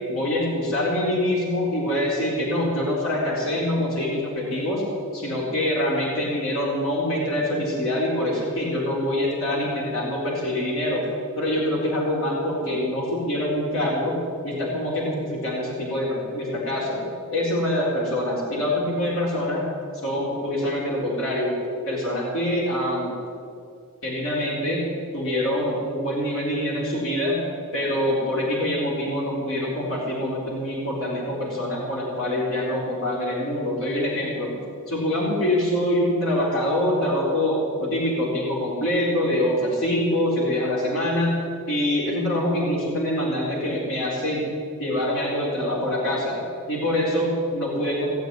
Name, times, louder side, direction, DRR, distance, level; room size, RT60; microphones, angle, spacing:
voice 1, 0.1-4.8 5.1-11.0 11.4-14.2 14.4-17.0 17.3-19.6 20.0-21.5 21.9-23.2 24.0-24.8 25.1-27.4 27.7-34.6 34.9-41.3 41.7-44.5 44.8-46.4 46.7-48.1, left 1 dB, 65° left, -4 dB, 4.0 m, -25 dB
17.5 x 8.0 x 9.7 m, 2.4 s
head